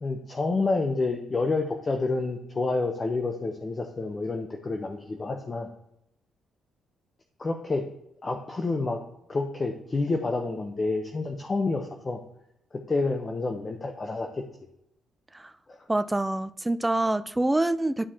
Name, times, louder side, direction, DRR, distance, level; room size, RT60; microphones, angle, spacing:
voice 1, 0.0-5.7 7.4-7.9 8.2-9.0 9.3-12.2 12.9-14.3 15.7-15.8, left 3 dB, 30° left, 0.8 m, -28 dB
voice 2, 15.9-18.1, right 2 dB, 10° right, 0.4 m, -26 dB
11.0 x 4.6 x 2.8 m
cardioid pair, 90°, 0 cm